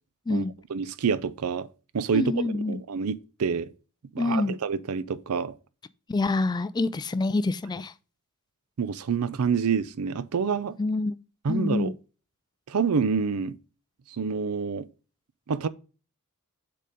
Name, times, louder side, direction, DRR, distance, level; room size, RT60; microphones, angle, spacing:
voice 1, 0.7-1.7 1.9-3.7 4.1-5.6 8.8-10.8 11.4-11.9 12.7-13.6 14.1-14.9 15.5-15.7, right 6 dB, 70° right, 0.5 m, -27 dB
voice 2, 2.1-2.8 4.2-4.6 6.1-7.9 10.8-11.1 11.5-11.9, left 3 dB, 20° left, 0.3 m, -26 dB
6.7 x 3.8 x 5.0 m
head